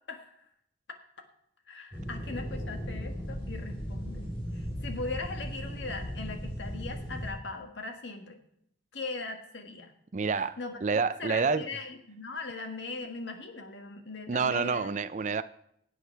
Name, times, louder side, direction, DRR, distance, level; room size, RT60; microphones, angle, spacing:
voice 1, 1.7-4.3 4.5-8.4 8.9-9.9 10.3-10.8 11.2-14.9, left 3 dB, 90° left, 1.7 m, -39 dB
sound 1, 1.9-7.3, equal, 30° left, 3.9 m, -37 dB
voice 2, 10.1-11.7 14.3-15.4, right 5 dB, 40° right, 0.4 m, -28 dB
16.5 x 8.4 x 4.6 m
head